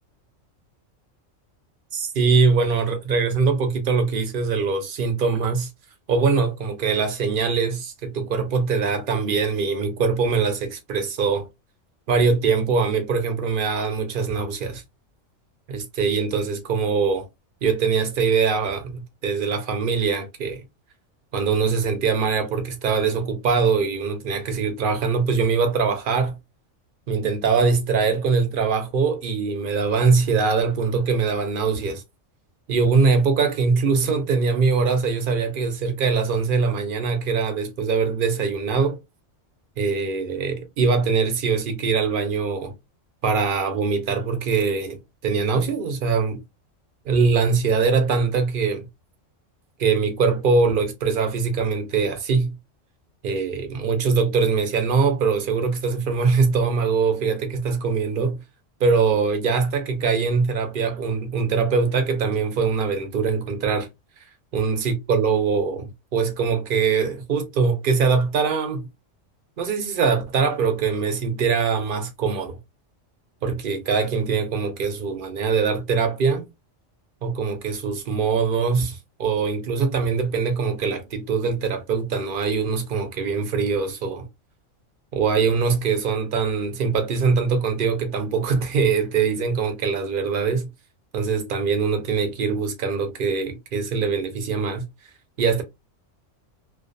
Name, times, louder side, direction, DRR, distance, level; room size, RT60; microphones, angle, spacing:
voice 1, 1.9-5.7 6.1-11.5 12.1-14.8 15.7-17.3 17.6-20.6 21.3-26.4 27.1-32.0 32.7-39.0 39.8-42.7 43.2-46.4 47.1-48.9 49.8-52.5 53.2-58.4 58.8-63.9 64.5-68.9 69.6-72.6 73.4-76.5 77.2-84.3 85.1-90.7 91.1-94.9 95.4-95.6, right 5 dB, 60° right, 0.6 m, -22 dB
2.4 x 2.3 x 2.4 m
omnidirectional pair, 1.3 m